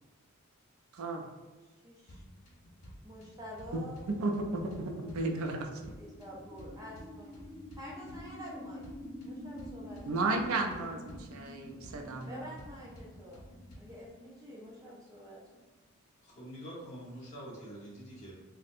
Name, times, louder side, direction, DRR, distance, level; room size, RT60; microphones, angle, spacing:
voice 1, 0.9-1.3 4.2-5.8 10.1-12.5, right 3 dB, 75° right, 2 dB, 0.4 m, -34 dB
voice 2, 1.6-2.2 3.0-4.1 4.4-5.1 6.0-7.3 7.7-8.8 9.2-10.0 10.6-10.8 12.3-13.4 13.7-15.6, equal, 15° right, -4 dB, 0.5 m, -48 dB
sound 1, 2.1-14.1, equal, 70° left, 0.7 m, -53 dB
sound 2, 5.8-15.7, left 1 dB, 45° right, 0.8 m, -49 dB
voice 3, 16.2-18.3, equal, 30° left, -7 dB, 1.1 m, -45 dB
4.1 x 2.1 x 2.5 m, 1.3 s
head